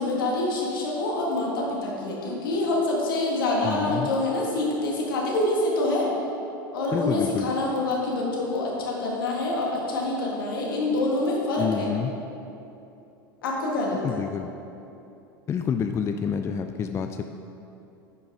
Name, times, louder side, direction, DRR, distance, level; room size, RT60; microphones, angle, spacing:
voice 1, 0.0-6.1 6.7-11.9 13.4-14.2, left 2 dB, 70° left, -3 dB, 1.8 m, -26 dB
voice 2, 3.6-4.1 6.9-7.5 11.6-12.1 13.9-14.5 15.5-17.2, left 7 dB, 25° left, 7 dB, 0.3 m, -28 dB
10.5 x 5.3 x 3.7 m, 2.8 s
figure-of-eight pair, 80°, 12 cm